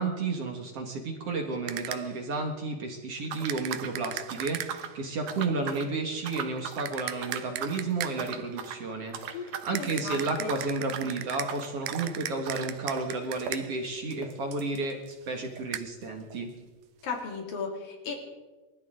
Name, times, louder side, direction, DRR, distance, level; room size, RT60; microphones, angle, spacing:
voice 1, 0.0-16.5, right 3 dB, 50° right, 3 dB, 2.3 m, -32 dB
sound 1, 1.7-2.2 3.5-5.0 6.9-8.4 9.8-13.9 15.7-15.8, right 13 dB, 85° right, 2.5 m, -38 dB
sound 2, 3.3-5.0 5.3-5.9 6.2-6.9 7.2-7.8 8.2-8.8 9.1-9.8 10.0-15.7 16.0-16.1 16.3-16.4 17.1-17.2, right 8 dB, 70° right, 2.6 m, -40 dB
voice 2, 9.7-10.6 17.0-18.2, left 5 dB, 80° left, 1 dB, 4.4 m, -35 dB
28.5 x 13.5 x 3.8 m, 1.2 s
omnidirectional pair, 4.0 m